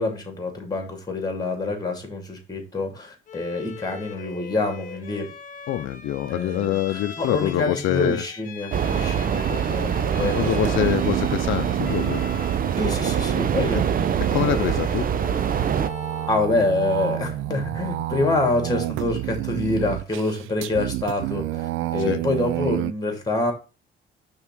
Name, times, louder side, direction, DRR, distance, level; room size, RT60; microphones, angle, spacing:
voice 1, 0.0-5.3 6.3-10.9 12.8-13.8 16.3-23.5, left 2 dB, 20° left, 4 dB, 2.6 m, -26 dB
Bowed string instrument, 3.3-16.4, left 6 dB, 40° left, 1.2 m, -42 dB
voice 2, 5.7-8.2 10.2-12.2 13.7-13.8 14.2-15.1 22.1-22.2, left 12 dB, 80° left, 9 dB, 0.6 m, -25 dB
sound 1, 8.7-15.9, right 8 dB, 45° right, 0.6 m, -24 dB
sound 2, 9.7-22.9, right 15 dB, 85° right, 0.4 m, -30 dB
5.6 x 3.7 x 6.0 m, 0.32 s
cardioid pair, 90°, 20 cm